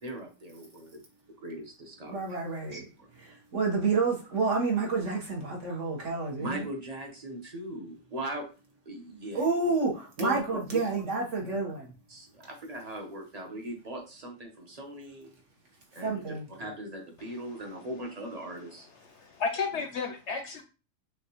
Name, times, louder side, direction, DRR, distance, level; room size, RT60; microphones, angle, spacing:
voice 1, 0.0-1.0 1.4-2.2 2.7-3.1 6.4-8.4 8.8-9.4 10.2-10.8 11.4-11.6 12.1-15.3 15.9-16.2 16.5-18.9 19.2-19.3 19.7-19.8, right 1 dB, 30° right, 1 dB, 1.0 m, -39 dB
voice 2, 2.1-2.8 3.2-6.6 9.3-11.9 16.0-16.5, right 4 dB, 60° right, -1 dB, 1.6 m, -29 dB
voice 3, 19.2-20.6, left 5 dB, 65° left, 6 dB, 0.8 m, -32 dB
6.0 x 2.4 x 3.0 m, 0.32 s
omnidirectional pair, 1.4 m